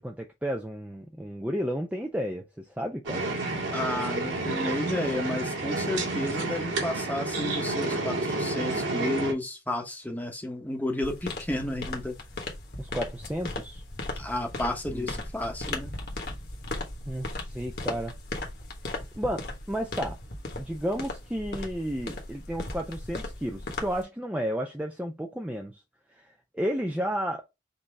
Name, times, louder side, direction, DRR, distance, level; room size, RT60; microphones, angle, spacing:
voice 1, 0.0-3.2 12.8-13.8 14.9-15.1 17.1-18.1 19.2-20.2 20.6-25.8 26.1-26.3 26.5-27.4, equal, 5° right, 0.5 m, -32 dB
sound 1, 3.0-9.3, right 2 dB, 80° right, 2.1 m, -30 dB
voice 2, 3.7-12.1 14.1-15.9, left 1 dB, 10° left, 1.0 m, -32 dB
sound 2, 11.0-24.0, left 2 dB, 55° left, 1.3 m, -37 dB
5.3 x 2.8 x 3.4 m
head